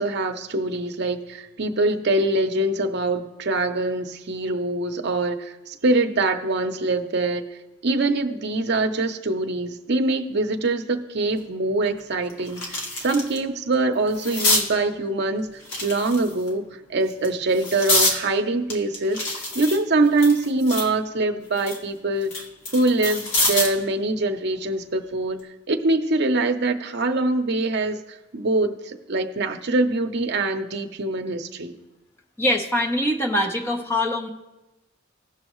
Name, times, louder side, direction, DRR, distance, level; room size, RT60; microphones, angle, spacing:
voice 1, 0.0-7.4 7.8-15.5 15.8-16.6 16.9-19.2 19.5-22.3 22.7-25.4 25.7-28.0 28.3-31.8, right 2 dB, 55° right, 5 dB, 0.7 m, -23 dB
sound 1, 11.4-11.5 11.9-13.4 13.7-14.7 15.6-16.5 17.1-18.2 18.7-20.9 21.3-23.8 25.2-25.4, left 2 dB, 70° left, 1.7 m, -26 dB
voice 2, 32.4-34.3, left 1 dB, 10° left, 1 dB, 0.9 m, -23 dB
17.0 x 6.3 x 3.1 m, 1.0 s
head